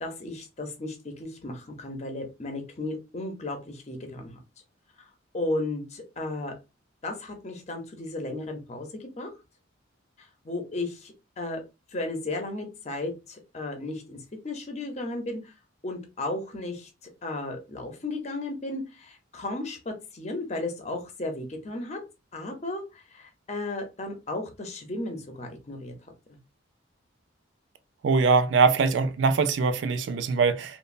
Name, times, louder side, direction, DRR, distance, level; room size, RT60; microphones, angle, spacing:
voice 1, 0.0-4.4 5.0-5.1 5.3-6.5 7.0-9.3 10.2-11.6 11.9-15.5 15.8-16.9 17.2-22.0 22.3-25.9 26.3-26.4, left 2 dB, 35° left, 0.6 m, -34 dB
voice 2, 28.0-30.8, right 4 dB, 65° right, 0.4 m, -22 dB
3.0 x 2.0 x 2.4 m
head